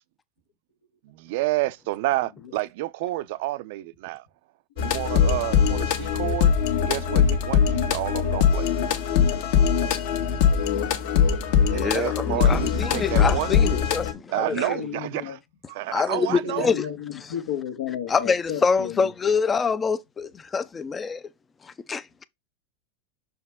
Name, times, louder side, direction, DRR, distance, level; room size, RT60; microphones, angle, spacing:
voice 1, 1.0-4.2 4.8-6.5 6.8-8.7 11.7-13.6 14.3-15.4 15.7-16.7, right 18 dB, 65° right, 0.5 m, -29 dB
sound 1, 4.8-14.1, left 7 dB, 65° left, 1.5 m, -22 dB
voice 2, 11.7-14.7 15.9-16.9 18.1-21.2 21.6-22.2, left 5 dB, 15° left, 0.5 m, -26 dB
voice 3, 12.5-12.8 13.7-15.4 16.3-19.1, left 8 dB, 85° left, 1.7 m, -34 dB
6.1 x 4.6 x 3.5 m
supercardioid pair, 140°, 0 cm